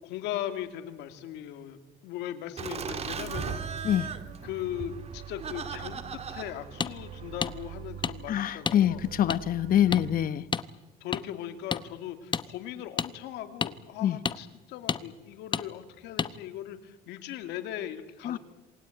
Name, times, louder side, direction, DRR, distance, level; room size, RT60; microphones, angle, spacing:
voice 1, 0.0-3.9 4.4-9.0 9.9-10.0 11.0-18.4, left 11 dB, 90° left, 7 dB, 2.5 m, -39 dB
Laughter, 2.6-7.7, right 6 dB, 40° right, 2.2 m, -39 dB
sound 1, 2.8-10.3, right 10 dB, 65° right, 2.8 m, -44 dB
sound 2, 6.8-6.9 7.4-7.5 8.0-8.1 8.7-8.8 9.3-9.4 9.9-10.0 10.5-10.7 11.1-11.2 11.7-11.8 12.3-12.5 13.0-13.1 13.6-13.7 14.3-14.4 14.9-15.0 15.5-15.7 16.2-16.3, left 6 dB, 30° left, 1.0 m, -29 dB
voice 2, 8.3-10.4 14.0-14.2 18.2-18.4, left 11 dB, 55° left, 14 dB, 1.2 m, -25 dB
27.5 x 19.5 x 9.1 m, 1.2 s
cardioid pair, 110°, 17 cm